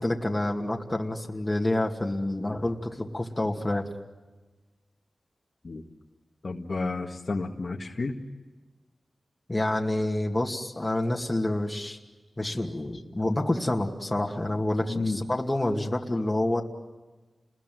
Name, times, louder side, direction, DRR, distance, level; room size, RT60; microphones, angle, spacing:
voice 1, 0.0-3.8 9.5-12.0 12.4-16.6, left 1 dB, 20° left, 1 dB, 2.4 m, -28 dB
voice 2, 6.4-8.1 14.9-15.2, left 3 dB, 55° left, 2 dB, 1.9 m, -31 dB
30.0 x 21.0 x 9.4 m, 1.2 s
cardioid pair, 60°, 0 cm